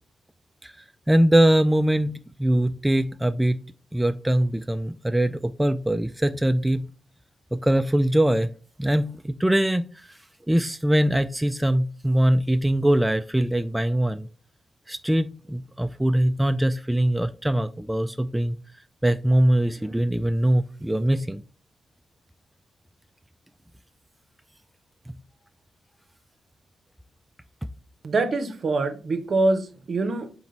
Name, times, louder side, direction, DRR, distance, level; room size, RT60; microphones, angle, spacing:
voice 1, 1.1-2.1 2.4-3.6 3.9-6.9 7.5-8.5 8.8-9.9 10.5-14.3 14.9-18.6 19.0-21.4, right 1 dB, 10° right, 0.3 m, -22 dB
voice 2, 28.0-30.3, right 2 dB, 60° right, 0.7 m, -24 dB
3.9 x 3.0 x 4.2 m
hypercardioid pair, 40°, 0 cm